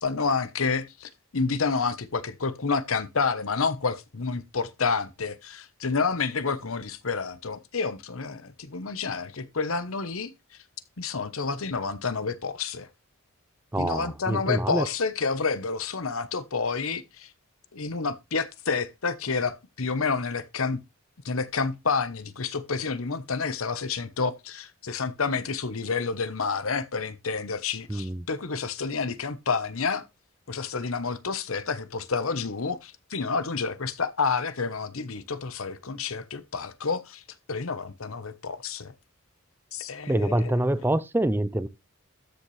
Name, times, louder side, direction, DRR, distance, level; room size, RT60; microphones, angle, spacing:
voice 1, 0.0-10.3 11.0-12.9 13.8-17.3 17.7-20.8 21.2-30.0 30.5-38.9 39.7-40.6, left 4 dB, 80° left, 1.0 m, -29 dB
voice 2, 13.7-14.9 27.9-28.3 40.1-41.7, right 1 dB, 10° right, 0.5 m, -26 dB
13.0 x 6.8 x 3.2 m
head